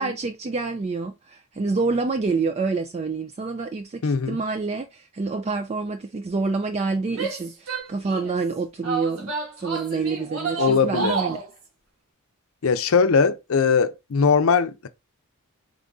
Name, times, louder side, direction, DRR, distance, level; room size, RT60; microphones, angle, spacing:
voice 1, 0.0-11.4, right 4 dB, 30° right, 0.3 m, -27 dB
voice 2, 4.0-4.4 10.6-11.2 12.6-14.9, left 5 dB, 65° left, 0.6 m, -20 dB
Female speech woman speaking / Yell, 7.1-8.4 8.8-11.5, right 5 dB, 75° right, 1.7 m, -30 dB
3.9 x 3.7 x 3.5 m
head